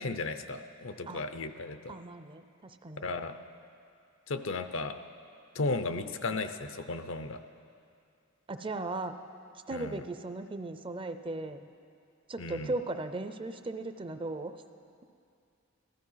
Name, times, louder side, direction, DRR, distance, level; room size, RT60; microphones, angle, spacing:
voice 1, 0.0-1.9 3.0-3.3 4.3-5.0 5.5-7.4 9.7-10.0 12.4-12.7, left 3 dB, 70° left, 9 dB, 0.7 m, -35 dB
voice 2, 1.9-3.0 8.5-9.2 9.7-11.7 12.3-14.6, right 2 dB, 25° right, 9 dB, 0.5 m, -37 dB
15.5 x 13.5 x 5.7 m, 2.4 s
head